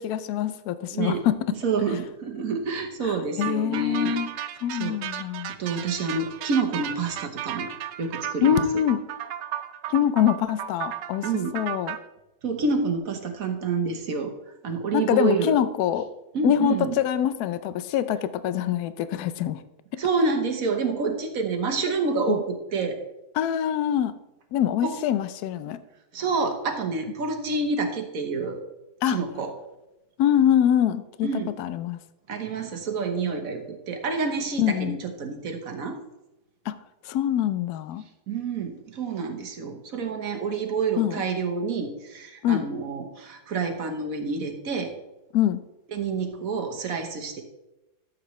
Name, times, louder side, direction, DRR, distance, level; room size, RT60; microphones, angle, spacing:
voice 1, 0.0-1.5 3.0-4.3 4.6-5.5 8.4-9.0 9.9-11.2 11.5-12.0 14.9-16.1 16.4-19.6 22.3-22.4 23.4-24.1 24.5-25.8 29.0-29.2 30.2-32.0 34.6-35.0 36.7-36.8 37.1-38.0 41.0-41.2 42.4-42.7 45.3-45.6, left 10 dB, 70° left, 13 dB, 1.1 m, -24 dB
voice 2, 0.9-1.2 1.6-4.2 4.7-5.0 5.6-7.7 8.0-8.6 11.2-11.6 12.4-14.3 14.6-15.6 16.3-17.0 20.0-23.0 24.8-25.0 26.1-28.6 29.1-29.5 31.2-31.5 32.3-36.0 38.3-44.9 45.9-47.4, right 4 dB, 55° right, 5 dB, 1.3 m, -28 dB
sound 1, 3.4-12.0, right 11 dB, 90° right, 1.3 m, -34 dB
13.0 x 7.6 x 3.1 m, 0.95 s
omnidirectional pair, 1.8 m